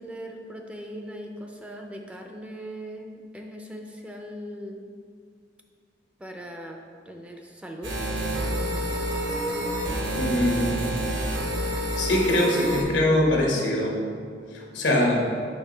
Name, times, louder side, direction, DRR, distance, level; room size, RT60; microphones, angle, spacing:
voice 1, 0.0-4.9 6.2-6.8 7.1-8.0 8.5-8.8, equal, 5° right, 2 dB, 0.4 m, -39 dB
sound 1, 7.8-12.8, right 1 dB, 75° right, 1.1 m, -28 dB
voice 2, 10.1-10.8 11.7-14.0 14.5-15.2, left 1 dB, 90° left, -1 dB, 1.1 m, -23 dB
6.5 x 3.1 x 4.9 m, 2.1 s
head